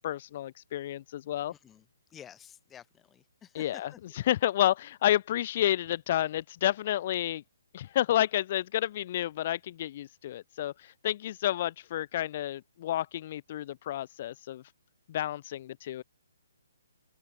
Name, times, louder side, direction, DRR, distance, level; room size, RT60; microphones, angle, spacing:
voice 1, 0.0-1.5 3.5-7.4 7.7-14.6 15.1-16.0, left 12 dB, 45° left, 0.6 m, -30 dB
voice 2, 1.5-4.0, left 9 dB, 15° left, 6.5 m, -51 dB
open air
hypercardioid pair, 140°, 0 cm